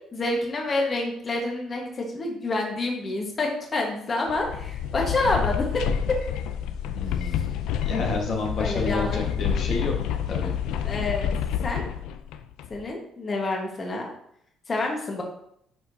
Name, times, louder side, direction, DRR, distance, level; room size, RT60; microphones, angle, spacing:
voice 1, 0.1-5.8 6.1-6.2 7.3-7.4 8.6-9.2 10.8-11.3 11.6-11.8 12.7-14.1 14.7-15.2, left 2 dB, 35° left, 0 dB, 1.4 m, -28 dB
sound 1, 4.3-12.8, left 8 dB, 90° left, 0.4 m, -28 dB
voice 2, 6.9-7.5 7.8-9.9 10.3-10.5, left 3 dB, 60° left, 0 dB, 1.4 m, -29 dB
10.5 x 4.4 x 2.8 m, 0.71 s
cardioid pair, 120°, 0 cm